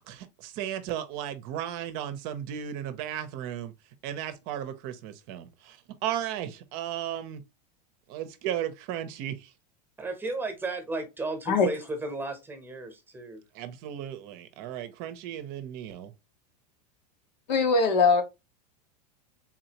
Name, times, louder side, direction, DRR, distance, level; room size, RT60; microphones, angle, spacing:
voice 1, 0.1-3.7 4.0-7.4 8.1-9.5 13.5-16.1, right 11 dB, 45° right, 0.6 m, -35 dB
voice 2, 10.0-13.4, right 2 dB, 10° right, 0.9 m, -34 dB
voice 3, 17.5-18.2, left 4 dB, 90° left, 1.1 m, -21 dB
3.7 x 2.7 x 2.8 m
supercardioid pair, 140°, 21 cm